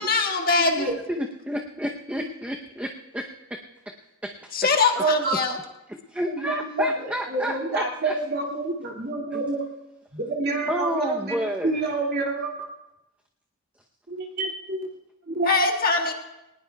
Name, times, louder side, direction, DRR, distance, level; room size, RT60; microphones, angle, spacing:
voice 1, 0.0-0.9 4.5-5.5 15.5-16.1, left 4 dB, 45° left, 2 dB, 1.6 m, -22 dB
voice 2, 0.6-0.9 5.0-5.4 6.3-9.7 10.1-12.7 14.1-14.8 15.3-15.5, right 2 dB, 50° right, -1 dB, 2.3 m, -28 dB
voice 3, 1.1-2.9 3.1-3.6 4.2-4.5 6.1-8.2 9.3-9.4 10.7-11.9, equal, 5° right, 1 dB, 0.7 m, -30 dB
21.0 x 19.0 x 2.3 m, 0.94 s
head